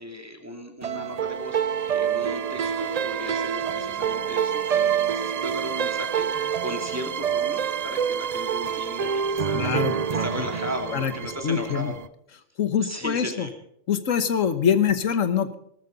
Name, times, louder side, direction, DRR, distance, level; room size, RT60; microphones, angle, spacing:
voice 1, 0.0-1.6 1.9-6.3 6.6-9.8 10.1-12.0 12.8-13.5, equal, 10° right, 3 dB, 2.6 m, -36 dB
sound 1, 0.8-12.1, right 8 dB, 50° right, 0.4 m, -27 dB
voice 2, 9.5-10.2 10.9-11.1 11.4-11.9 12.6-13.5 13.9-15.5, left 8 dB, 80° left, 11 dB, 1.5 m, -24 dB
18.5 x 14.0 x 3.9 m, 0.73 s
omnidirectional pair, 1.3 m